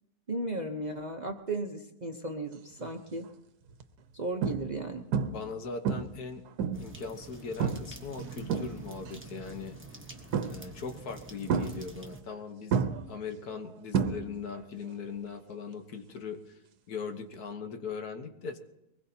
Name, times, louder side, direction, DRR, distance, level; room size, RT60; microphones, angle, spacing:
voice 1, 0.3-3.3 4.1-5.0, right 2 dB, 35° right, 3 dB, 0.8 m, -35 dB
sound 1, 2.8-3.1 3.7-3.8 4.4-4.8 5.1-5.5 5.9-7.0 7.6-8.0 8.3-9.1 10.3-10.8 11.5-12.4 12.7-14.6 14.9-15.3 17.3-17.4, right 6 dB, 80° right, 1.4 m, -30 dB
voice 2, 5.3-6.4 6.7-9.7 10.4-16.6 16.9-18.6, left 5 dB, 70° left, 6 dB, 1.7 m, -40 dB
sound 2, 6.7-12.2, right 2 dB, 10° right, 1.0 m, -48 dB
Boom, 8.2-11.5, right 5 dB, 65° right, 1.1 m, -48 dB
23.0 x 20.0 x 2.8 m, 0.90 s
omnidirectional pair, 1.7 m